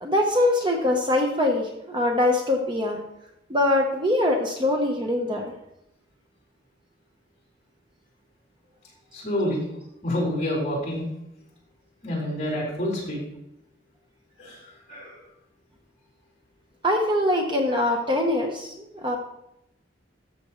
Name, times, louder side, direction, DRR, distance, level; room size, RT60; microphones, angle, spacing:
voice 1, 0.0-3.0 3.5-5.5 16.8-19.2, left 1 dB, 25° right, 2 dB, 0.9 m, -23 dB
voice 2, 9.1-9.6 10.0-11.1 12.0-13.2 14.4-15.2, left 1 dB, 35° left, -3 dB, 4.1 m, -28 dB
13.0 x 6.9 x 3.1 m, 0.82 s
head